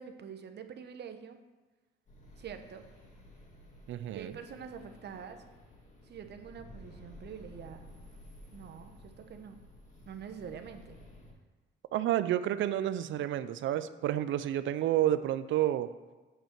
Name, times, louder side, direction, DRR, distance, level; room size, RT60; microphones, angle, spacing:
voice 1, 0.0-1.4 2.4-2.8 4.1-5.4 6.0-7.9 8.5-9.6 10.1-11.0, right 7 dB, 60° right, 7 dB, 0.9 m, -45 dB
sound 1, 2.1-11.3, left 1 dB, 35° left, 2.1 m, -53 dB
voice 2, 3.9-4.3 11.9-15.9, right 12 dB, 75° right, 13 dB, 0.5 m, -30 dB
8.0 x 4.4 x 6.6 m, 1.3 s
cardioid pair, 90°, 20 cm